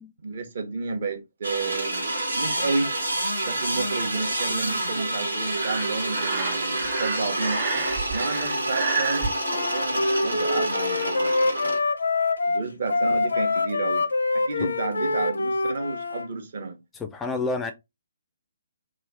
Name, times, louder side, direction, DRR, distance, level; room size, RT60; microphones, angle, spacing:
voice 1, 0.2-2.1 2.3-2.9 3.4-7.6 8.1-11.8 12.4-14.1 14.3-16.8, right 3 dB, 55° right, 0.9 m, -31 dB
sound 1, 1.4-11.8, right 1 dB, 80° right, 1.1 m, -28 dB
Breathing, 5.5-9.3, right 5 dB, 35° right, 1.1 m, -30 dB
Wind instrument woodwind instrument, 9.5-16.3, left 3 dB, 70° left, 0.5 m, -25 dB
voice 2, 17.0-17.7, left 3 dB, 10° left, 0.4 m, -29 dB
3.1 x 2.4 x 3.9 m
figure-of-eight pair, 135°, 0 cm